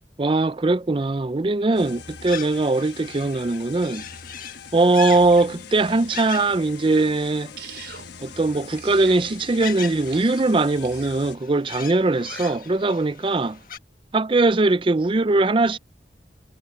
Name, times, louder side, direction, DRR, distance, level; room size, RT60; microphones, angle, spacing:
voice 1, 0.2-4.0 4.7-7.5 8.2-13.6 14.1-15.8, right 2 dB, 30° right, 0.5 m, -21 dB
sound 1, 1.7-11.4, left 5 dB, 75° left, 1.3 m, -43 dB
sound 2, 1.7-13.8, left 8 dB, 50° left, 1.5 m, -40 dB
sound 3, 7.6-8.1 8.8-9.2 10.1-10.4 10.8-11.2 12.1-12.6, right 7 dB, 70° right, 4.7 m, -41 dB
head